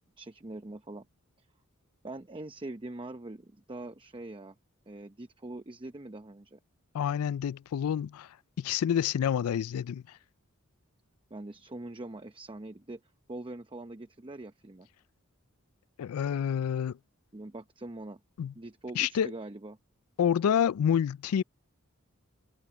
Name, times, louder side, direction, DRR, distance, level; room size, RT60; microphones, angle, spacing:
voice 1, 0.2-1.1 1.4-1.5 2.0-4.5 4.9-6.6 11.3-13.0 13.3-14.9 17.3-18.2 18.5-19.8, right 2 dB, 25° right, 0.8 m, -43 dB
voice 2, 6.9-8.3 8.6-10.0 16.0-17.0 18.4-18.5 19.0-19.3 20.2-21.4, left 8 dB, 80° left, 0.3 m, -28 dB
head